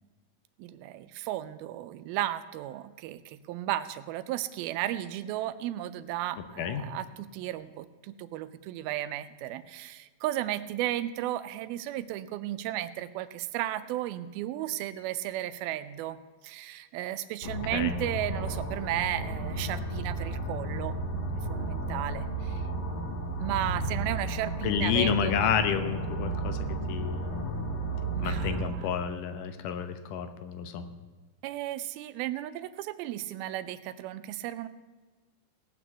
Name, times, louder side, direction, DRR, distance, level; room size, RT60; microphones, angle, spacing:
voice 1, 0.6-16.2 16.4-21.2 21.5-22.6 23.4-25.5 28.1-28.9 31.4-34.7, right 13 dB, 90° right, 13 dB, 2.5 m, -34 dB
sound 1, 17.4-28.6, right 2 dB, 40° left, 1.5 m, -33 dB
voice 2, 24.6-26.6 26.9-27.3 28.2-30.9, left 8 dB, 75° left, 9 dB, 2.2 m, -30 dB
17.5 x 6.1 x 8.0 m, 1.3 s
omnidirectional pair, 4.3 m